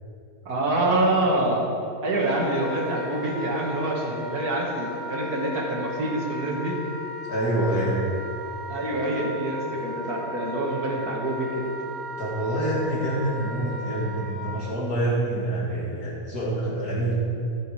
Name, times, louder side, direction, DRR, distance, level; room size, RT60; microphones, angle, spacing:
voice 1, 0.5-1.6 2.0-6.8 8.7-11.6, right 1 dB, 60° right, -2 dB, 2.2 m, -26 dB
Wind instrument woodwind instrument, 2.2-14.7, left 1 dB, ahead, 1.6 m, -36 dB
voice 2, 7.2-8.0 12.2-17.1, right 1 dB, 65° left, -5 dB, 2.3 m, -26 dB
14.0 x 7.2 x 4.8 m, 2.7 s
omnidirectional pair, 1.8 m